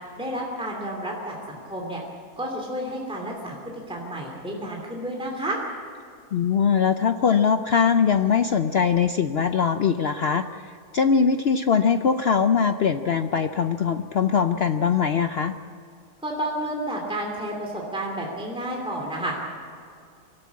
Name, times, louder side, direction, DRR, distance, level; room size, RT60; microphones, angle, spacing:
voice 1, 0.2-2.0 2.4-3.6 3.9-5.6 16.2-19.3, right 1 dB, 5° right, -1 dB, 2.8 m, -31 dB
voice 2, 6.3-15.5, left 6 dB, 60° left, 9 dB, 0.6 m, -22 dB
24.0 x 13.0 x 8.5 m, 2.4 s
omnidirectional pair, 1.7 m